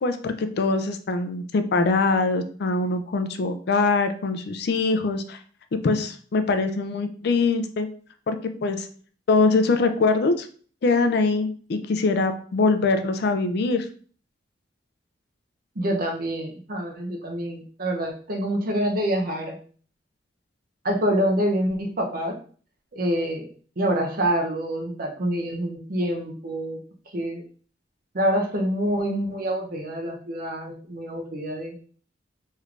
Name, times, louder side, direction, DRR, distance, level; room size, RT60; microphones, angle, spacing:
voice 1, 0.0-5.4 5.7-7.9 8.3-8.4 8.6-8.9 9.3-10.5 10.8-13.9, left 3 dB, 60° left, 8 dB, 0.4 m, -23 dB
voice 2, 15.8-19.6 20.8-22.4 22.9-23.5 23.8-26.8 27.1-27.4 28.1-31.8, equal, 55° right, 2 dB, 0.7 m, -26 dB
3.2 x 3.2 x 2.4 m, 0.44 s
head